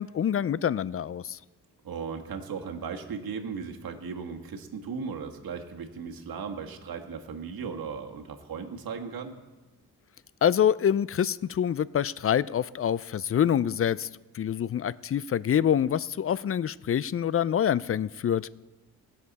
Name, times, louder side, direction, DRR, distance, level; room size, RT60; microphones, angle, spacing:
voice 1, 0.0-1.4 10.4-14.1 14.3-18.5, left 9 dB, 35° left, 19 dB, 0.4 m, -26 dB
voice 2, 1.8-9.4, right 5 dB, 65° right, 3 dB, 1.7 m, -37 dB
19.5 x 6.8 x 4.1 m, 1.1 s
supercardioid pair, 55°, 38 cm